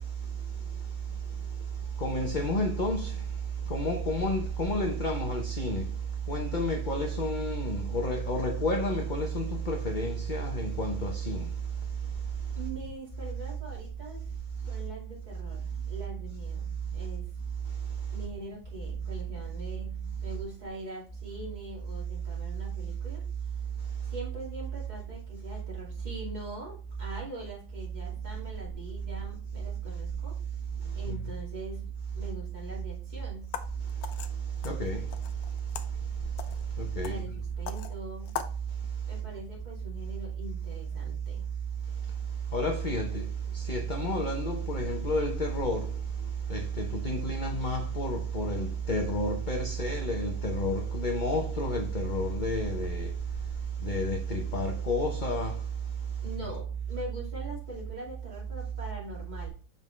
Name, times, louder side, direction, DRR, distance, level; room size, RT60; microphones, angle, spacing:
voice 1, 2.0-3.1 3.7-5.8 6.3-11.5 31.1-31.2 34.6-35.0 36.8-37.2 42.5-43.2 43.5-45.9 46.5-53.1 53.8-55.6, equal, 40° left, 0.8 m, -30 dB
voice 2, 12.5-14.3 14.7-17.3 18.1-19.9 20.2-23.2 24.0-30.4 30.9-31.8 32.1-33.5 37.1-38.3 39.1-41.5 56.2-59.5, right 1 dB, 25° right, 2.5 m, -43 dB
sound 1, 33.4-38.6, left 8 dB, 75° left, 1.2 m, -42 dB
7.3 x 5.4 x 3.2 m
omnidirectional pair, 1.7 m